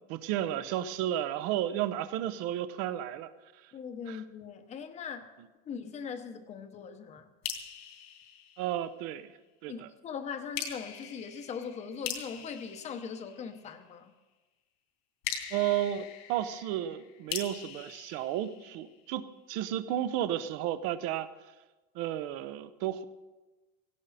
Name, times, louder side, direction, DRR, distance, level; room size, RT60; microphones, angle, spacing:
voice 1, 0.0-3.3 4.1-4.2 8.6-9.3 9.6-9.9 15.5-21.3 21.9-23.0, right 12 dB, 45° right, 13 dB, 0.9 m, -33 dB
voice 2, 3.7-5.3 5.6-7.3 9.7-14.1, left 6 dB, 20° left, 8 dB, 1.0 m, -40 dB
sound 1, 7.4-9.2 10.5-13.9 15.2-19.1, left 9 dB, 75° left, 3.2 m, -42 dB
18.0 x 17.0 x 4.2 m, 1.2 s
cardioid pair, 175°, 33 cm